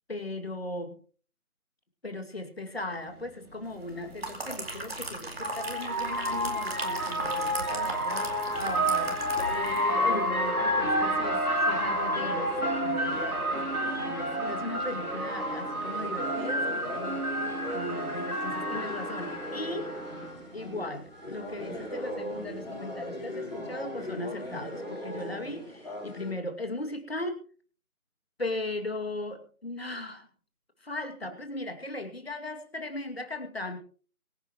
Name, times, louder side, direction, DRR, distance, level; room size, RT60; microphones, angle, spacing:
voice 1, 0.1-1.0 2.0-9.2 9.5-17.3 17.7-20.0 20.5-27.4 28.4-30.3 30.8-33.8, left 2 dB, 45° left, 6 dB, 2.5 m, -38 dB
sound 1, 3.2-3.3 4.7-20.3, equal, 80° right, 3.3 m, -30 dB
sound 2, 3.9-9.9 10.2-10.4, right 1 dB, 40° right, 4.3 m, -38 dB
sound 3, 10.9-26.3, left 1 dB, ahead, 6.5 m, -40 dB
23.5 x 10.5 x 3.1 m, 0.40 s
figure-of-eight pair, 175°, 44 cm